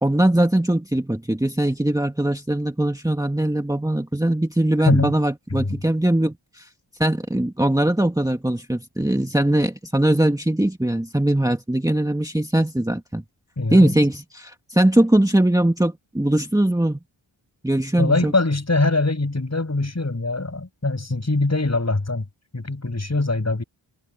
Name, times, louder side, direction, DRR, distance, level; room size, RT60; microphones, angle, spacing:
voice 1, 0.0-6.7 7.0-13.2 13.7-17.0 17.6-18.3, right 1 dB, 5° right, 1.7 m, -21 dB
voice 2, 13.6-13.9 18.0-22.2 22.5-23.6, left 2 dB, 35° left, 7.4 m, -22 dB
wide cardioid pair, 75°, 47 cm